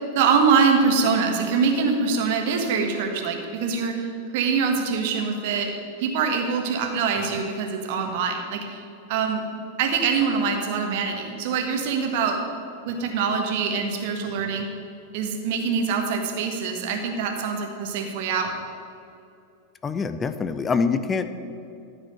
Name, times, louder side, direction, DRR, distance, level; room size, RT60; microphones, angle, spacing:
voice 1, 0.1-4.1 4.3-5.7 6.0-8.8 9.1-9.4 9.8-12.4 12.8-14.7 15.1-18.5, right 5 dB, 50° right, 3 dB, 1.4 m, -24 dB
voice 2, 19.8-21.5, left 5 dB, 20° left, 11 dB, 0.5 m, -25 dB
14.0 x 4.9 x 6.6 m, 2.6 s
figure-of-eight pair, 90°, 0 cm